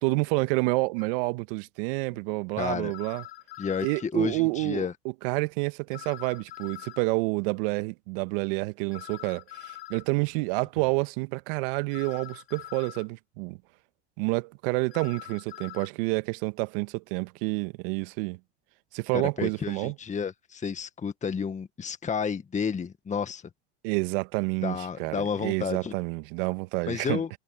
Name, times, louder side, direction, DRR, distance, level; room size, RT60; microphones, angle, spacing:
voice 1, 0.0-3.2 3.8-4.9 5.2-13.6 14.2-18.4 18.9-19.9 23.8-27.2, right 27 dB, 65° right, 1.5 m, -29 dB
sound 1, 1.0-1.1 2.9-4.0 5.9-7.0 8.9-10.1 11.9-13.1 14.9-15.9, left 16 dB, 75° left, 7.4 m, -44 dB
voice 2, 2.6-2.9 3.6-4.9 19.1-23.4 24.6-25.9 26.9-27.3, left 6 dB, 25° left, 1.7 m, -31 dB
hypercardioid pair, 80°, 30 cm